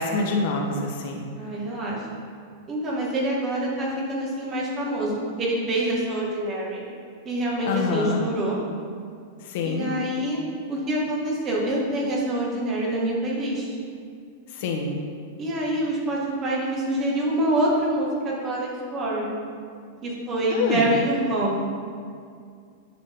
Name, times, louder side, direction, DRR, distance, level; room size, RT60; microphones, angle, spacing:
voice 1, 0.0-1.2 7.6-8.2 9.4-9.9 14.5-15.0 20.5-20.9, left 3 dB, 60° left, 1 dB, 1.5 m, -26 dB
voice 2, 1.4-2.0 2.7-6.8 7.2-8.6 9.6-10.4 10.7-13.8 15.4-19.4 20.0-21.6, right 1 dB, 30° right, -4 dB, 2.2 m, -26 dB
9.6 x 6.0 x 3.9 m, 2.2 s
hypercardioid pair, 130°, 0 cm